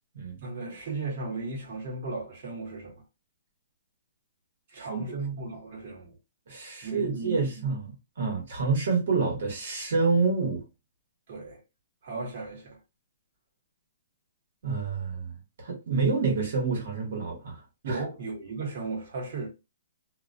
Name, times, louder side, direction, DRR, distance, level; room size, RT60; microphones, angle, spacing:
voice 1, 0.4-2.9 4.7-6.1 6.8-7.4 11.3-11.6 12.0-12.8 17.8-19.5, right 3 dB, 40° right, 1.0 m, -35 dB
voice 2, 6.5-10.6 14.6-15.3 15.6-17.6 17.9-18.0, right 4 dB, 65° right, 1.0 m, -28 dB
2.3 x 2.1 x 2.5 m
hypercardioid pair, 170°, 0 cm